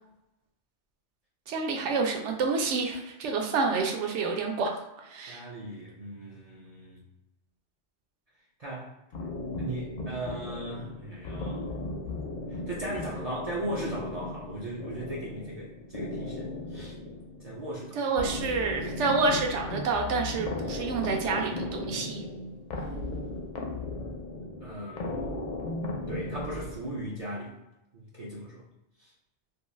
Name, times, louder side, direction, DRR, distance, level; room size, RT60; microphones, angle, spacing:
voice 1, 1.5-4.8 5.0-5.4 18.0-22.2, right 4 dB, 85° right, 2 dB, 0.9 m, -28 dB
voice 2, 5.3-7.1 8.6-8.9 9.6-11.7 12.5-17.0 17.4-18.0 24.6-25.4 26.1-27.6 27.9-28.6 29.0-29.1, right 1 dB, 55° right, -4 dB, 0.4 m, -38 dB
sound 1, 9.1-27.2, left 2 dB, 55° left, 0.5 m, -36 dB
2.6 x 2.3 x 3.1 m, 0.93 s
omnidirectional pair, 1.2 m